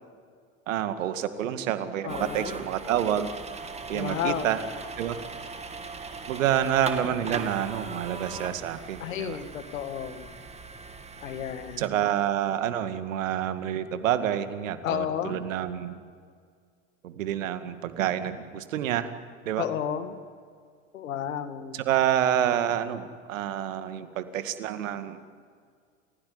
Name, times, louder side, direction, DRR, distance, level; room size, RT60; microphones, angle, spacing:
voice 1, 0.7-3.3 3.9-4.6 5.0-5.2 6.3-9.4 11.8-16.0 17.0-19.1 19.5-19.6 21.7-25.2, right 10 dB, 75° right, 10 dB, 2.2 m, -28 dB
voice 2, 2.0-2.6 3.9-4.5 9.0-10.3 11.2-11.9 14.8-15.4 19.6-20.2 20.9-21.8, left 9 dB, 80° left, 10 dB, 2.2 m, -32 dB
sound 1, 2.1-11.9, right 4 dB, 15° right, 2.7 m, -39 dB
30.0 x 17.0 x 9.8 m, 2.1 s
hypercardioid pair, 90°, 39 cm